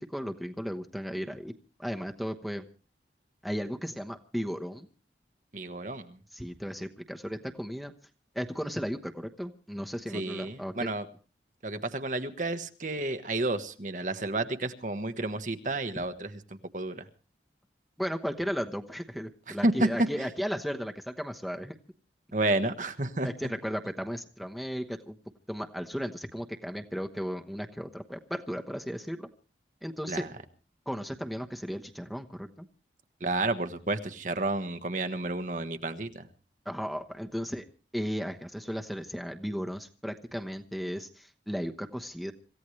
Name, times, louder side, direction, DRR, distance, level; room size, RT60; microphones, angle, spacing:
voice 1, 0.0-1.5 1.8-2.6 3.4-4.9 6.3-7.9 8.3-10.7 18.0-21.7 23.2-25.2 25.5-29.3 29.8-30.2 30.9-32.7 36.6-37.7 37.9-42.3, equal, ahead, 4 dB, 1.0 m, -35 dB
voice 2, 5.5-6.2 10.1-11.1 11.6-17.1 19.5-19.9 22.3-23.3 30.1-30.3 33.2-36.3, right 2 dB, 45° right, 8 dB, 1.2 m, -31 dB
26.5 x 15.5 x 3.2 m, 0.36 s
head